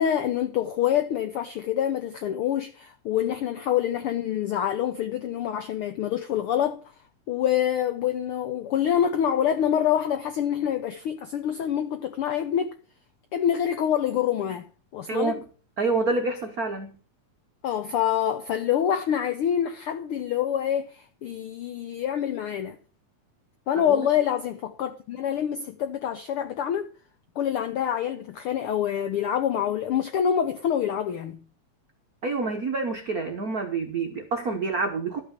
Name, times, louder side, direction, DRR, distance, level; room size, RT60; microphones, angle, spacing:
voice 1, 0.0-6.8 7.3-12.8 13.3-14.7 14.9-15.4 17.6-22.8 23.7-26.9 27.4-31.4, left 9 dB, 80° left, 1.2 m, -26 dB
voice 2, 15.1-15.4 15.8-17.0 23.8-24.1 32.2-35.2, right 3 dB, 70° right, 0.8 m, -27 dB
12.5 x 5.8 x 7.5 m
omnidirectional pair, 3.5 m